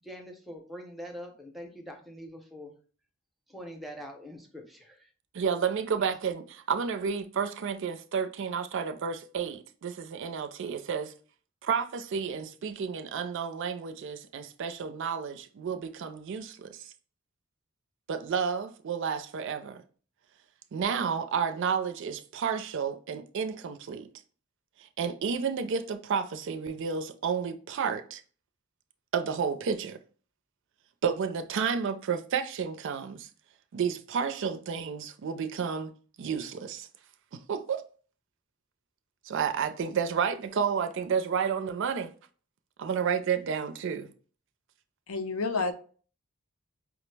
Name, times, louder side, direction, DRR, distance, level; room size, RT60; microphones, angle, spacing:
voice 1, 0.0-2.7 3.5-5.1, equal, ahead, 0.6 m, -44 dB
voice 2, 5.3-11.1 11.6-16.9 18.1-19.8 20.7-24.1 24.8-28.2 29.1-30.0 31.0-33.3 33.7-35.9 36.2-36.9 37.3-37.8 39.2-42.1 42.8-44.1, right 6 dB, 60° right, 0.4 m, -31 dB
voice 3, 45.1-45.7, left 3 dB, 75° left, 0.5 m, -29 dB
4.9 x 2.0 x 3.2 m
head